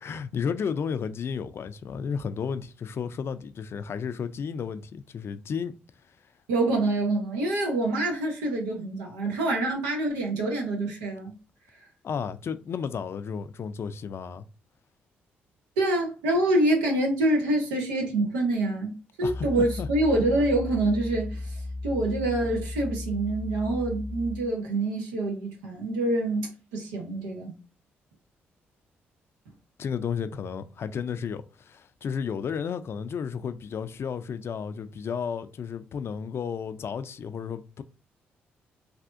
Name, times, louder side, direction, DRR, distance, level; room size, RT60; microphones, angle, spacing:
voice 1, 0.0-5.8 12.0-14.5 19.2-19.9 29.8-37.8, left 6 dB, 55° left, 0.4 m, -33 dB
voice 2, 6.5-11.3 15.8-21.6 21.8-27.5, right 2 dB, 90° right, 0.9 m, -26 dB
sound 1, 19.2-24.5, left 2 dB, 85° left, 0.7 m, -35 dB
3.4 x 2.7 x 2.5 m
hypercardioid pair, 50°, 5 cm